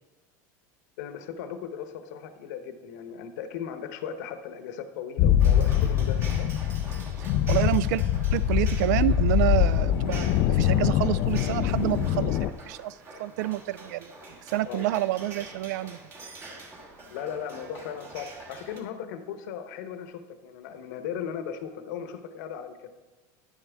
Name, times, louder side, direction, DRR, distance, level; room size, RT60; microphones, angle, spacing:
voice 1, 1.0-6.5 14.6-14.8 17.1-22.9, left 8 dB, 75° left, 9 dB, 0.9 m, -37 dB
sound 1, 5.2-12.5, left 10 dB, 40° left, 0.3 m, -23 dB
sound 2, 5.4-18.8, right 2 dB, 30° right, 1.5 m, -46 dB
voice 2, 7.2-8.0 8.3-14.1 14.5-16.0, right 15 dB, 75° right, 18 dB, 0.4 m, -28 dB
10.5 x 7.3 x 3.5 m, 1.2 s
supercardioid pair, 150°, 9 cm